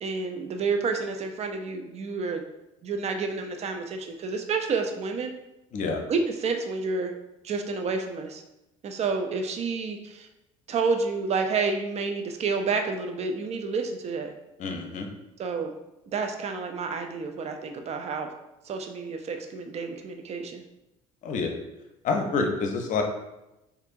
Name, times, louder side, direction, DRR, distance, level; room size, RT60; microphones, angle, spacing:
voice 1, 0.0-2.4 2.8-5.3 6.1-7.1 7.4-8.4 8.8-10.3 10.7-14.3 15.4-15.7 16.1-18.3 18.6-20.6, right 4 dB, 40° right, 5 dB, 0.5 m, -29 dB
voice 2, 14.6-15.1 21.2-21.5 22.0-23.0, left 4 dB, 45° left, 3 dB, 0.6 m, -27 dB
4.3 x 2.6 x 2.5 m, 0.93 s
figure-of-eight pair, 60°, 18 cm